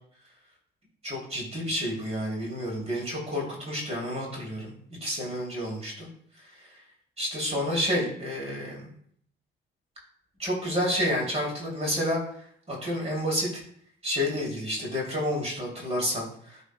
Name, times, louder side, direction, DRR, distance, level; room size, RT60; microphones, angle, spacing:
voice 1, 1.0-4.7 5.0-6.1 7.2-8.9 10.4-12.2 12.7-13.6 14.0-16.6, equal, 35° right, -3 dB, 2.8 m, -29 dB
11.5 x 4.1 x 2.3 m, 0.64 s
cardioid pair, 90°, 20 cm